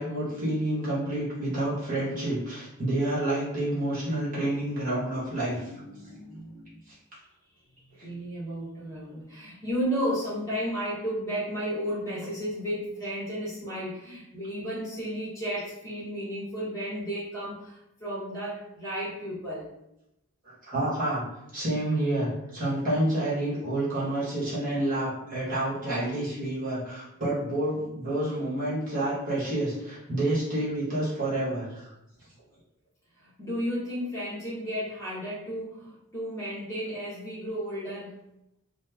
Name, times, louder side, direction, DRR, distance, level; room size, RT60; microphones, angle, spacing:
voice 1, 0.0-5.6 6.9-7.0 20.4-21.2 21.5-31.9, right 1 dB, 40° right, -8 dB, 1.3 m, -29 dB
voice 2, 5.2-6.7 8.0-19.7 33.2-38.2, equal, 15° left, -8 dB, 0.9 m, -33 dB
3.1 x 2.1 x 3.3 m, 0.86 s
head